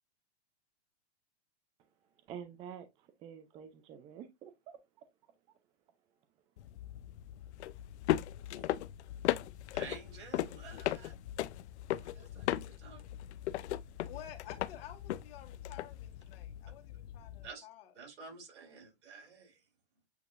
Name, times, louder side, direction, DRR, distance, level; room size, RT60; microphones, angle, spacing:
voice 1, 2.3-2.9 3.2-4.8, right 8 dB, 15° right, 0.4 m, -47 dB
sound 1, 6.6-17.5, left 13 dB, 80° left, 0.5 m, -38 dB
voice 2, 9.7-11.1 11.9-13.0 17.4-17.7 17.9-19.6, right 5 dB, 85° right, 2.9 m, -51 dB
voice 3, 14.1-17.9, left 11 dB, 60° left, 1.5 m, -51 dB
8.0 x 2.7 x 2.5 m
supercardioid pair, 150°, 33 cm